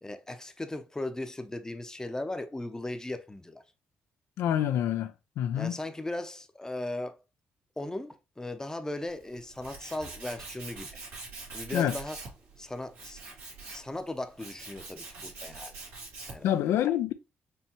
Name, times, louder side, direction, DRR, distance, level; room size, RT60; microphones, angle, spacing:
voice 1, 0.0-3.6 5.6-7.2 7.8-10.9 11.5-12.2 12.6-13.2 13.7-15.7 16.3-16.5, left 2 dB, 15° left, 0.7 m, -37 dB
voice 2, 4.4-5.8 11.7-11.9 16.4-17.1, left 11 dB, 80° left, 0.3 m, -27 dB
Tools, 9.1-16.6, right 3 dB, 80° right, 2.0 m, -44 dB
4.5 x 3.2 x 2.9 m
supercardioid pair, 65°, 4 cm